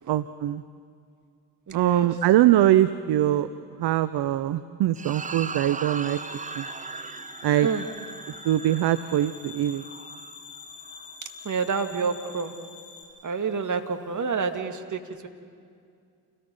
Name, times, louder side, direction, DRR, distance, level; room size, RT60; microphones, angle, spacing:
voice 1, 0.1-0.6 1.7-3.5 3.8-6.2 6.6-6.7 7.4-7.7 8.4-9.8, right 13 dB, 55° right, 14 dB, 0.8 m, -22 dB
voice 2, 1.7-2.2 7.6-7.9 11.4-12.5 13.2-15.3, right 5 dB, 40° right, 6 dB, 2.1 m, -28 dB
sound 1, 4.9-11.5, right 5 dB, 15° right, 0.6 m, -39 dB
sound 2, 5.9-13.0, left 5 dB, 80° left, 3.0 m, -46 dB
28.5 x 18.5 x 5.4 m, 2.3 s
hypercardioid pair, 45°, 46 cm